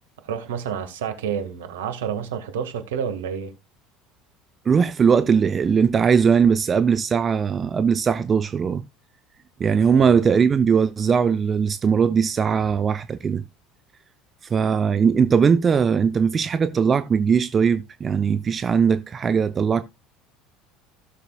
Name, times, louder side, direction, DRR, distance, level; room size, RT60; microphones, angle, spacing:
voice 1, 0.2-3.5 9.9-10.2, right 8 dB, 70° right, 1.7 m, -29 dB
voice 2, 4.7-8.8 9.6-13.4 14.5-19.8, right 6 dB, 30° right, 0.6 m, -20 dB
16.0 x 6.6 x 2.3 m
figure-of-eight pair, 65°, 0 cm